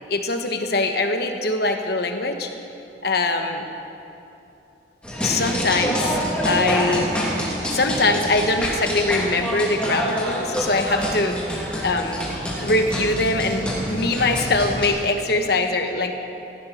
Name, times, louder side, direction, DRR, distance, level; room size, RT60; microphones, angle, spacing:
voice 1, 0.1-2.5 3.0-3.6 5.2-6.2 6.4-7.1 7.7-11.6 11.8-12.3 12.6-16.2, left 2 dB, 60° left, 5 dB, 1.2 m, -22 dB
sound 1, 5.0-14.9, equal, 5° left, 2.7 m, -26 dB
17.5 x 16.0 x 4.4 m, 2.8 s
head